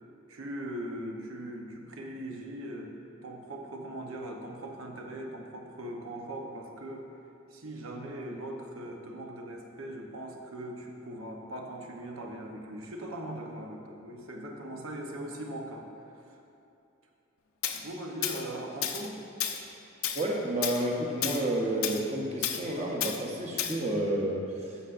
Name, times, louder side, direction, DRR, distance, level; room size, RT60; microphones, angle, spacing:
voice 1, 0.3-2.9 3.2-7.1 7.5-15.9 16.3-16.4 17.7-19.2, right 1 dB, 85° right, 2 dB, 0.9 m, -40 dB
Tools, 17.6-17.8 18.2-18.4 18.8-19.1 19.4-19.6 20.0-20.3 20.6-20.8 21.2-21.4 21.8-22.0 22.4-22.6 23.0-23.2 23.6-23.8, left 10 dB, 85° left, 0.5 m, -31 dB
voice 2, 20.1-24.8, right 1 dB, 30° right, -1 dB, 0.8 m, -30 dB
13.5 x 5.5 x 2.5 m, 2.7 s
head